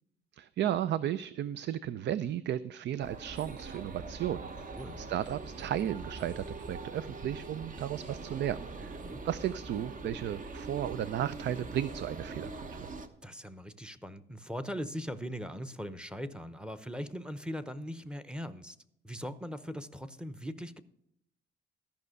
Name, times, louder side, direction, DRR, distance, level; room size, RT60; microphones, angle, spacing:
voice 1, 0.3-9.0 9.2-12.9, right 11 dB, 65° right, 16 dB, 0.5 m, -34 dB
sound 1, 3.0-13.1, right 3 dB, 40° right, 1.1 m, -43 dB
voice 2, 13.2-18.8 19.0-20.8, equal, 5° right, 12 dB, 0.8 m, -40 dB
13.5 x 5.6 x 6.5 m, 0.74 s
cardioid pair, 90°, 20 cm